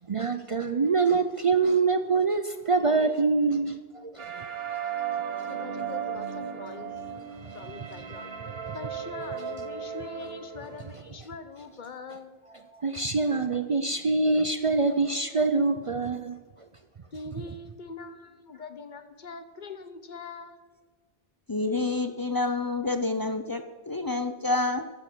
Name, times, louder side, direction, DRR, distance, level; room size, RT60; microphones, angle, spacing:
voice 1, 0.1-4.5 8.5-8.8 12.7-16.4, right 4 dB, 45° right, 9 dB, 0.5 m, -25 dB
sound 1, 4.2-11.0, right 7 dB, 70° right, 1.4 m, -36 dB
voice 2, 5.4-7.0 7.5-8.3 8.7-12.4 17.1-20.6, left 4 dB, 50° left, 10 dB, 0.9 m, -42 dB
voice 3, 21.5-24.8, left 3 dB, 35° left, 8 dB, 0.3 m, -28 dB
13.0 x 7.7 x 6.1 m, 1.4 s
omnidirectional pair, 1.0 m